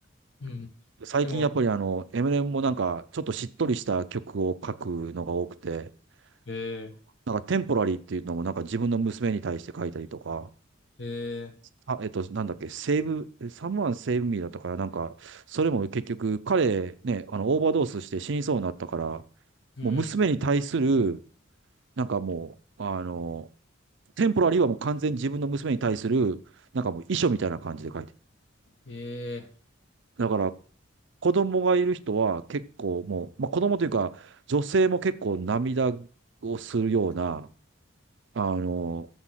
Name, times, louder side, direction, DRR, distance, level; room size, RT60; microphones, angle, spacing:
voice 1, 1.0-5.9 7.3-10.5 11.9-19.2 19.8-21.2 22.0-23.5 24.2-26.4 26.7-28.1 30.2-30.5 31.2-36.1 36.4-37.5 38.3-39.1, right 4 dB, 65° right, 0.6 m, -27 dB
voice 2, 6.5-6.9 11.0-11.5 19.8-20.1 28.8-29.5, left 2 dB, 65° left, 1.5 m, -36 dB
7.1 x 6.2 x 7.4 m
head